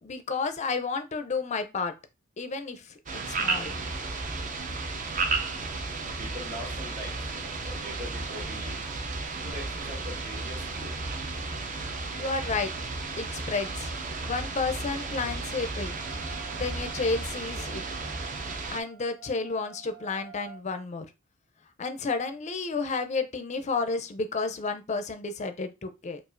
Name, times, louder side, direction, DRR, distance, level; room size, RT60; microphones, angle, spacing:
voice 1, 0.0-1.9 2.4-2.9 3.3-3.7 12.2-12.7 13.2-13.9 14.2-15.9 16.5-17.8 18.7-21.1 21.8-26.2, left 4 dB, 35° left, 0.4 m, -31 dB
sound 1, 3.1-18.8, right 3 dB, 40° right, 0.6 m, -33 dB
voice 2, 6.2-7.2 7.6-8.8 9.4-11.0, equal, 55° right, 2.3 m, -41 dB
Wind instrument woodwind instrument, 16.0-20.6, right 9 dB, 80° right, 1.1 m, -49 dB
4.9 x 2.4 x 2.5 m
head